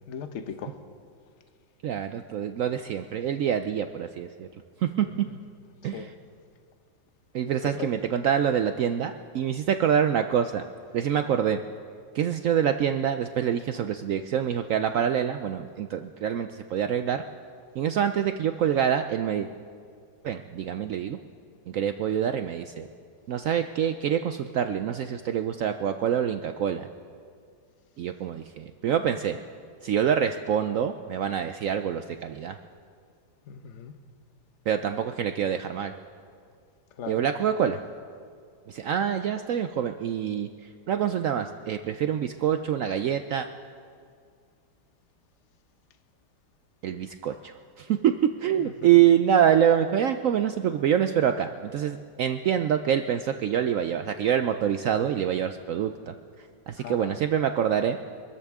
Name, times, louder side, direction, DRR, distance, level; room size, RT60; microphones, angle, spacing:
voice 1, 0.1-0.7 5.0-5.4 5.8-6.1 7.6-7.9 33.5-33.9 37.0-37.3 48.6-49.0 56.8-57.2, left 7 dB, 50° left, 9 dB, 1.0 m, -38 dB
voice 2, 1.8-4.5 4.8-5.1 5.8-6.1 7.3-10.6 10.9-11.6 12.1-17.2 17.8-19.5 20.2-21.2 21.7-22.9 23.3-26.9 28.0-29.4 29.8-32.6 34.7-35.9 37.1-37.8 38.7-40.5 40.9-43.5 46.8-48.1 48.4-58.0, right 9 dB, 80° right, 8 dB, 0.7 m, -26 dB
25.0 x 13.5 x 3.6 m, 2.2 s
omnidirectional pair, 1.9 m